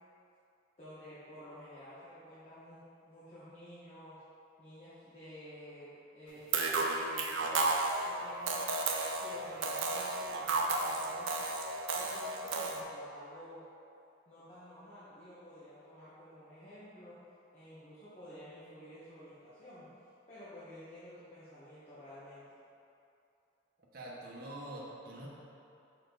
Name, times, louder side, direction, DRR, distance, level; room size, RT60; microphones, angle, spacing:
voice 1, 0.8-4.2 4.6-7.7 8.0-8.6 9.2-11.3 11.9-13.6 14.2-17.2 17.5-19.9 20.3-22.4, equal, 35° left, -13 dB, 1.3 m, -51 dB
sound 1, 6.5-12.8, right 3 dB, 90° right, 0.6 m, -33 dB
voice 2, 23.9-25.3, right 1 dB, 50° right, -4 dB, 1.0 m, -45 dB
6.6 x 4.3 x 3.9 m, 2.7 s
head